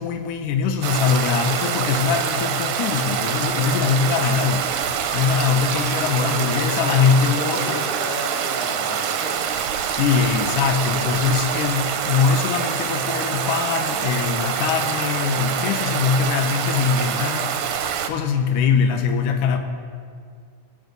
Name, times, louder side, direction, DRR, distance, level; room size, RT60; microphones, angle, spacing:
voice 1, 0.0-4.7 5.1-7.9 9.9-19.6, left 6 dB, 75° left, 6 dB, 2.4 m, -22 dB
Stream, 0.8-18.1, right 8 dB, 75° right, 2.1 m, -25 dB
voice 2, 5.6-9.5, equal, 20° left, -2 dB, 1.5 m, -34 dB
20.0 x 10.5 x 4.0 m, 2.1 s
omnidirectional pair, 3.8 m